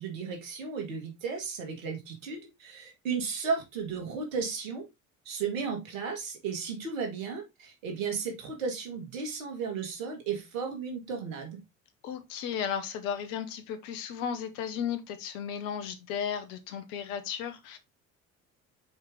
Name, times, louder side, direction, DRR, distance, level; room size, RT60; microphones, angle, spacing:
voice 1, 0.0-4.8 5.3-11.6, right 5 dB, 75° right, 2.2 m, -34 dB
voice 2, 12.0-17.8, left 8 dB, 65° left, 1.3 m, -35 dB
5.3 x 4.8 x 3.7 m
hypercardioid pair, 60°, 40 cm